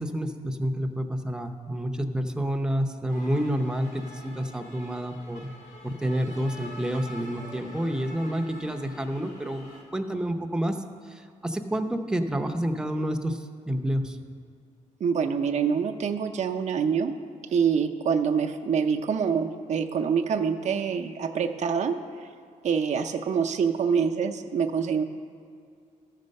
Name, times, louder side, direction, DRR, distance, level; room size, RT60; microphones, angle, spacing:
voice 1, 0.0-5.5 5.8-9.7 9.9-10.8 11.4-14.2, equal, 5° right, 5 dB, 0.7 m, -29 dB
sound 1, 3.1-9.8, left 1 dB, 70° left, 2.0 m, -46 dB
voice 2, 15.0-17.1 17.5-22.0 22.6-25.0, right 6 dB, 55° right, 4 dB, 0.6 m, -25 dB
13.0 x 6.6 x 5.3 m, 2.3 s
cardioid pair, 115°, 14 cm